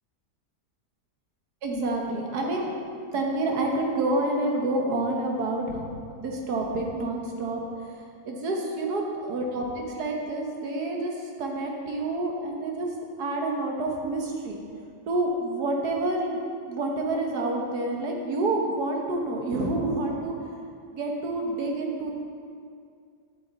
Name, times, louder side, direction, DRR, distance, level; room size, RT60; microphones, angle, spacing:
voice 1, 1.6-2.7 3.1-12.9 13.2-14.6 15.1-16.4 16.7-20.5 20.9-22.1, right 2 dB, 70° right, 0 dB, 1.6 m, -28 dB
9.3 x 7.8 x 4.0 m, 2.3 s
omnidirectional pair, 1.8 m